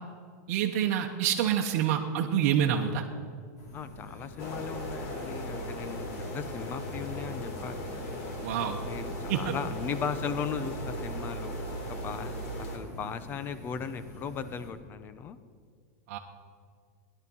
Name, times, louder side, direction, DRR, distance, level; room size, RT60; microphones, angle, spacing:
voice 1, 0.5-3.0 8.4-8.8 9.3-9.5 16.1-16.2, right 9 dB, 50° right, 0 dB, 1.1 m, -27 dB
sound 1, 3.6-14.7, left 1 dB, 90° left, 4.1 m, -46 dB
voice 2, 3.7-8.0 8.9-15.4, left 7 dB, 25° left, 13 dB, 0.7 m, -37 dB
wind in the spring forest, 4.4-12.8, equal, 55° left, 3.2 m, -37 dB
17.0 x 11.0 x 5.5 m, 2.1 s
supercardioid pair, 160°, 9 cm